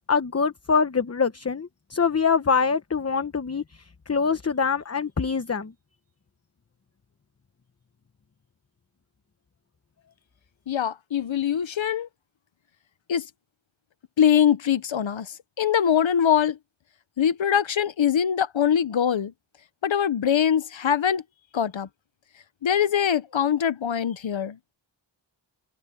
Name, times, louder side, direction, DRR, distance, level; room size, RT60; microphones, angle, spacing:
voice 1, 0.1-3.6 4.1-5.7, left 5 dB, 30° left, 1.0 m, -24 dB
voice 2, 10.7-12.1 13.1-13.3 14.2-16.6 17.2-19.3 19.8-21.2 21.5-21.9 22.6-24.7, left 8 dB, 70° left, 1.1 m, -23 dB
wide cardioid pair, 80°, 48 cm